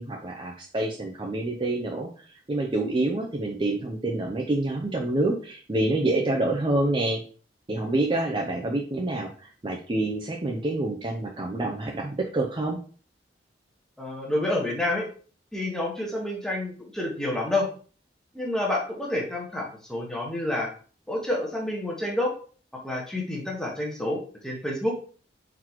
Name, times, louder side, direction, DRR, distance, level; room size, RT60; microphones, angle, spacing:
voice 1, 0.0-2.1 2.5-7.2 7.7-12.8, right 2 dB, 30° right, 0 dB, 0.5 m, -27 dB
voice 2, 14.0-15.0 15.5-17.7 18.3-20.7 21.1-22.3 22.8-25.0, left 1 dB, 5° left, -2 dB, 1.1 m, -28 dB
4.5 x 4.0 x 2.9 m, 0.41 s
head